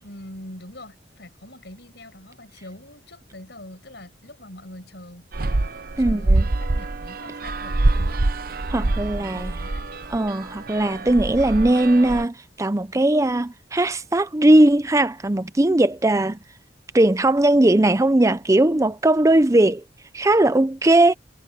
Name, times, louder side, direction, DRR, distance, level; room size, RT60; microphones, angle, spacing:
voice 1, 0.0-5.3 6.0-8.3 8.8-9.9, left 1 dB, 65° left, 5.8 m, -43 dB
sound 1, 5.3-12.2, right 2 dB, 55° right, 0.8 m, -25 dB
voice 2, 6.0-6.4 8.7-9.5 10.1-16.4 16.9-19.8 20.1-21.1, right 1 dB, 15° right, 0.6 m, -19 dB
head